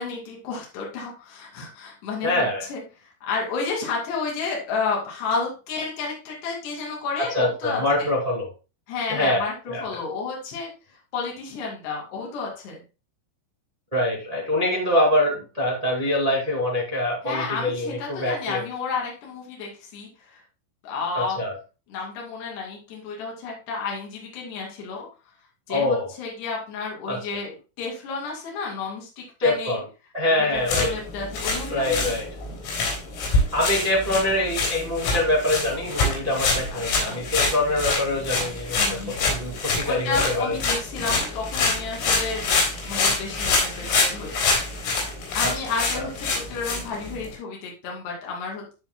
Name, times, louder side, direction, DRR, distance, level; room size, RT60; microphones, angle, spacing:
voice 1, 0.0-8.1 8.9-10.7 11.1-12.8 17.2-20.4 20.8-21.4 21.9-25.1 25.7-27.5 27.8-29.8 30.4-32.0 32.4-32.6 36.7-37.2 38.8-39.3 39.6-42.5 42.8-44.3 45.3-48.7, left 4 dB, 60° left, -2 dB, 4.4 m, -31 dB
voice 2, 2.2-2.6 7.3-8.5 9.1-9.9 13.9-18.6 21.1-21.5 25.7-26.1 27.1-27.2 29.4-29.8 30.1-30.9 31.7-32.3 33.5-40.5 45.4-45.5 45.9-46.0, left 1 dB, 65° right, -3 dB, 0.3 m, -24 dB
sound 1, 30.6-47.3, left 3 dB, 85° left, 6.2 m, -26 dB
15.5 x 5.5 x 2.2 m, 0.32 s
omnidirectional pair, 5.9 m